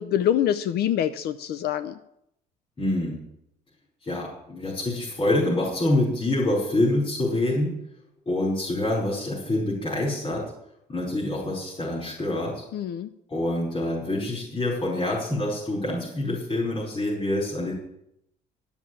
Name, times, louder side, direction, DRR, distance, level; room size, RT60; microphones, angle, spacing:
voice 1, 0.0-2.0 12.7-13.1, left 10 dB, 70° left, 13 dB, 0.7 m, -25 dB
voice 2, 2.8-3.2 4.0-7.7 8.3-10.5 10.9-12.6 13.3-17.7, left 1 dB, 30° left, -5 dB, 5.2 m, -26 dB
11.5 x 7.2 x 9.6 m, 0.78 s
cardioid pair, 110°, 17 cm